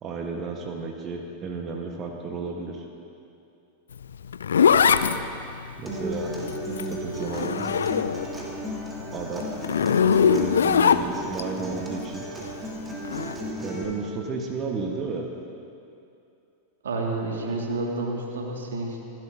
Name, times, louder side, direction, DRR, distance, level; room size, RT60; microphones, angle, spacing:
voice 1, 0.0-2.8 5.8-6.4 6.7-7.5 9.1-9.5 10.3-12.3 13.6-15.3, right 4 dB, 30° right, 2 dB, 1.2 m, -32 dB
Zipper (clothing), 3.9-8.4 8.8-11.4 13.0-13.3, left 7 dB, 70° left, 0.4 m, -22 dB
Acoustic guitar, 5.9-13.8, right 1 dB, 10° right, 2.6 m, -35 dB
voice 2, 16.8-19.0, right 2 dB, 65° right, 0 dB, 1.9 m, -29 dB
27.5 x 12.0 x 2.7 m, 2.6 s
figure-of-eight pair, 90°, 0 cm